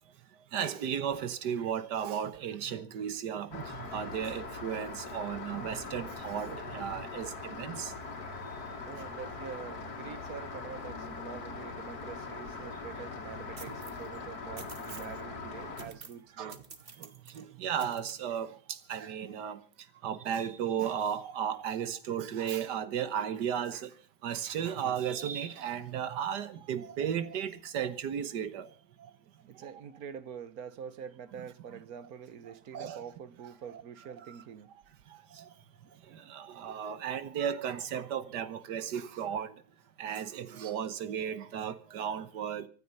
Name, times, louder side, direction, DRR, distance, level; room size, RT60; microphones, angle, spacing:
voice 1, 0.5-7.9 8.9-9.0 14.9-15.0 16.4-16.6 17.0-19.6 20.0-23.9 24.2-28.7 29.0-29.1 29.6-29.7 31.7-31.8 32.5-33.1 33.4-33.8 34.3-34.4 35.1-35.5 36.1-39.5 40.0-42.7, right 8 dB, 85° right, 1.7 m, -35 dB
Rain, 3.5-15.9, left 4 dB, 65° left, 2.7 m, -41 dB
voice 2, 8.8-16.6 29.5-34.7 36.0-36.4, right 7 dB, 65° right, 1.4 m, -45 dB
sound 1, 13.6-14.1 14.6-15.1 15.8-16.2 16.5-17.4 17.8-18.1, right 5 dB, 35° right, 1.4 m, -49 dB
24.5 x 9.8 x 5.5 m
omnidirectional pair, 1.8 m